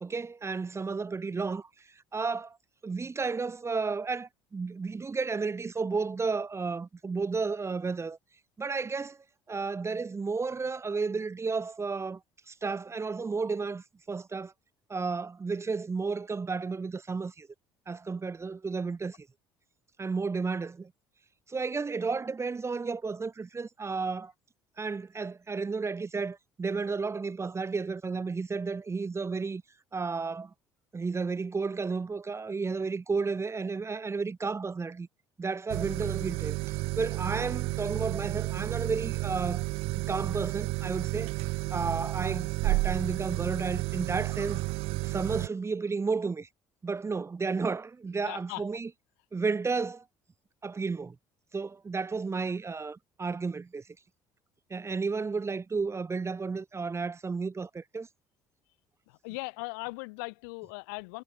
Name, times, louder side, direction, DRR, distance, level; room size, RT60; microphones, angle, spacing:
voice 1, 0.0-2.6 2.8-8.2 8.6-9.2 9.5-12.2 12.5-14.5 14.9-17.5 17.9-19.3 20.0-20.9 21.5-24.3 24.8-29.6 29.9-30.5 30.9-35.1 35.4-39.7 39.9-41.3 41.7-44.6 45.0-46.5 46.8-48.9 49.3-50.0 50.6-51.1 51.5-53.8 54.7-58.1, right 4 dB, 25° right, 1.7 m, -32 dB
sound 1, 35.7-45.5, right 23 dB, 70° right, 1.4 m, -31 dB
voice 2, 48.3-48.6 59.1-61.2, left 30 dB, 80° left, 2.0 m, -39 dB
hypercardioid pair, 65°, 10 cm